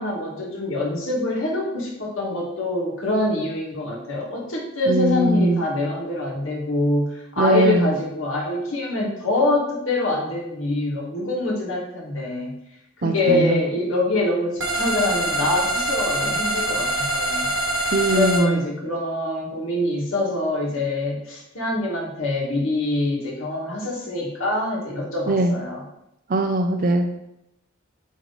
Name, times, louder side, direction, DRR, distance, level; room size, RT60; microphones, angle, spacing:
voice 1, 0.0-12.5 13.0-17.5 18.1-25.8, left 2 dB, 80° left, -3 dB, 1.9 m, -25 dB
voice 2, 4.9-5.6 7.4-7.9 13.0-13.6 17.9-18.6 25.3-25.5 26.3-27.1, right 1 dB, 45° right, 4 dB, 0.5 m, -20 dB
sound 1, 14.6-18.4, right 1 dB, 90° right, 1.7 m, -24 dB
8.1 x 3.1 x 4.0 m, 0.83 s
head